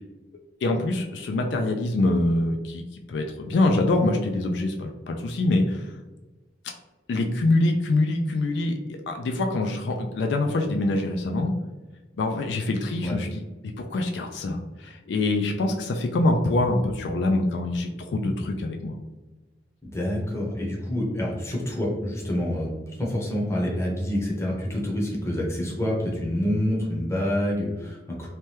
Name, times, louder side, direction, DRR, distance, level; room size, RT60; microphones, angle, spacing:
voice 1, 0.6-5.9 7.1-11.5 12.2-13.4 13.8-19.0, left 2 dB, 75° left, 3 dB, 0.3 m, -25 dB
voice 2, 19.8-28.3, left 1 dB, 15° left, -3 dB, 0.7 m, -27 dB
2.8 x 2.2 x 3.2 m, 1.1 s
head